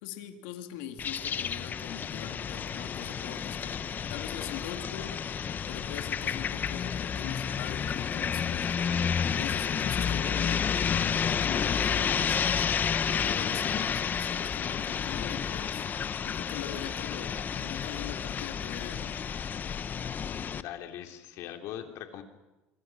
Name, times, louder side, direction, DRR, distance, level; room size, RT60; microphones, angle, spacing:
voice 1, 0.0-5.2 5.7-9.0 9.3-12.7 13.1-15.9 16.2-19.2, left 10 dB, 85° left, 6 dB, 2.5 m, -42 dB
sound 1, 1.0-20.6, left 7 dB, 35° left, 1.0 m, -31 dB
voice 2, 11.6-12.3 20.6-22.2, left 10 dB, 65° left, 5 dB, 3.2 m, -41 dB
26.5 x 24.0 x 6.1 m, 1.0 s
supercardioid pair, 110°, 5 cm